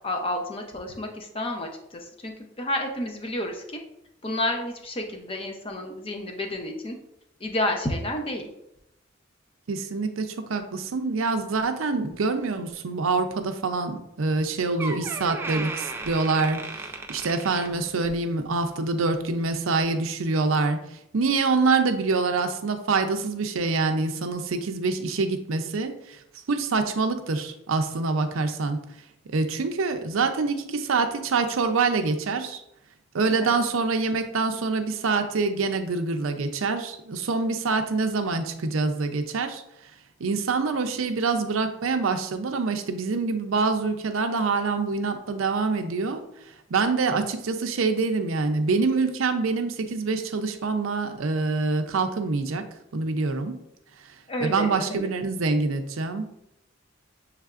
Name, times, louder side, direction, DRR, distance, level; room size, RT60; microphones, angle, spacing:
voice 1, 0.0-3.8 4.2-7.0 7.4-8.5 33.4-33.6 54.3-55.1, left 1 dB, 25° left, 3 dB, 0.6 m, -30 dB
voice 2, 9.7-20.8 21.1-26.2 26.5-28.8 29.3-32.6 33.1-39.6 40.2-46.2 46.7-52.6 52.9-53.6 54.4-56.4, right 4 dB, 85° right, 8 dB, 0.5 m, -25 dB
Door, 14.3-14.4 14.8-18.3 18.6-18.9 19.6-19.7, right 3 dB, 10° right, 0.3 m, -36 dB
6.5 x 3.3 x 2.4 m, 0.82 s
head